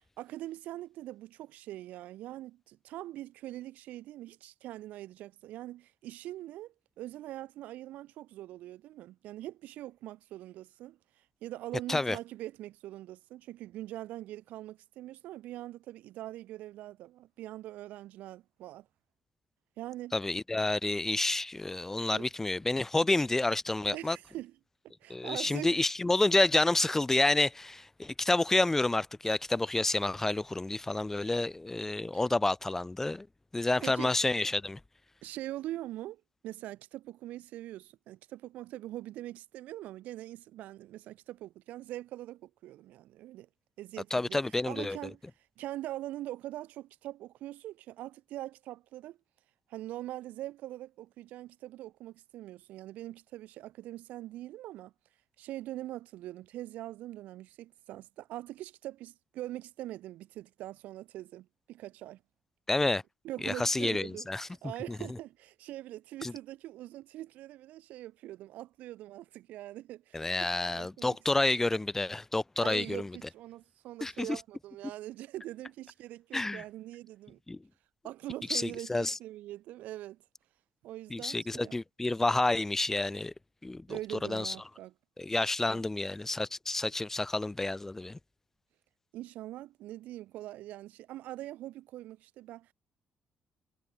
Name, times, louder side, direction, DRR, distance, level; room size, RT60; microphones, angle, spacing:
voice 1, 0.2-11.0 11.4-18.9 19.8-20.2 22.0-22.3 23.9-24.5 25.0-25.8 32.1-32.2 33.8-34.1 35.2-43.5 43.8-45.2 45.6-49.2 49.7-54.9 55.4-62.2 63.2-71.2 72.6-77.4 78.0-80.2 80.8-81.8 83.9-84.9 85.7-85.9 89.1-92.7, right 15 dB, 85° right, 2.6 m, -43 dB
voice 2, 20.1-24.2 25.1-33.3 33.5-34.8 44.1-45.0 62.7-63.0 63.4-64.5 66.2-66.3 70.1-73.1 74.0-74.4 76.3-76.6 77.5-77.6 78.5-79.2 81.1-83.3 83.6-84.0 84.3-84.5 85.2-88.2, left 2 dB, 15° left, 3.0 m, -29 dB
cardioid pair, 95°, 3 cm